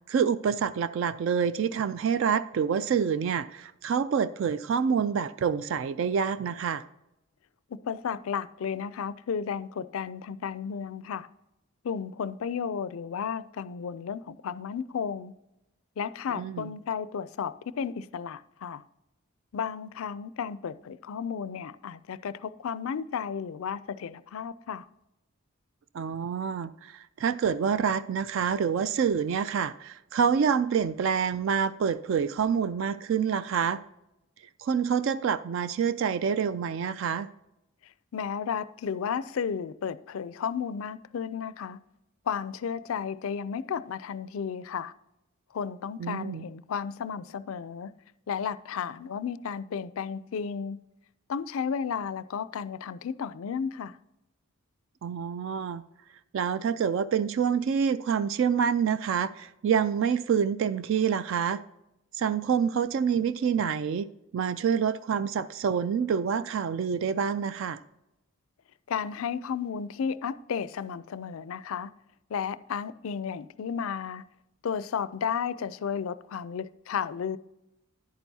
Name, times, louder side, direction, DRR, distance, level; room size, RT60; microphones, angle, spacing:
voice 1, 0.1-6.8 16.3-16.7 25.9-33.8 34.6-37.3 46.0-46.5 55.0-55.8 56.3-61.6 62.1-64.1 64.3-67.8, right 7 dB, 60° right, 0.3 m, -27 dB
voice 2, 7.7-11.3 11.8-15.3 16.0-18.8 19.5-24.9 38.1-41.8 42.3-44.9 45.5-47.9 48.3-50.8 51.3-54.0 68.9-71.9 72.3-74.2 74.6-77.4, left 7 dB, 70° left, 0.4 m, -33 dB
10.5 x 9.0 x 2.7 m
head